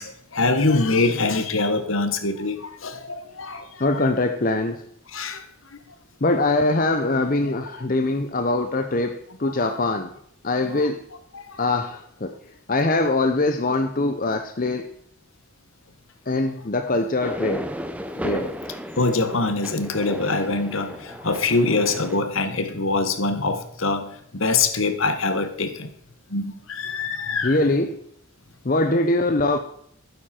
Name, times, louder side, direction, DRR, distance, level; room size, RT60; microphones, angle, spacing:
voice 1, 0.0-3.8 5.1-5.4 9.4-9.7 10.7-10.9 11.3-11.6 19.0-25.9 26.3-27.6, left 3 dB, 70° left, 9 dB, 1.4 m, -24 dB
voice 2, 3.8-4.8 6.2-10.1 10.4-11.0 11.6-12.3 12.7-14.9 16.3-17.7 18.2-18.5 27.4-28.0 28.6-29.6, left 2 dB, 40° left, 7 dB, 0.7 m, -22 dB
sound 1, 17.2-22.2, equal, 5° right, 0.7 m, -34 dB
12.5 x 9.4 x 4.4 m, 0.69 s
head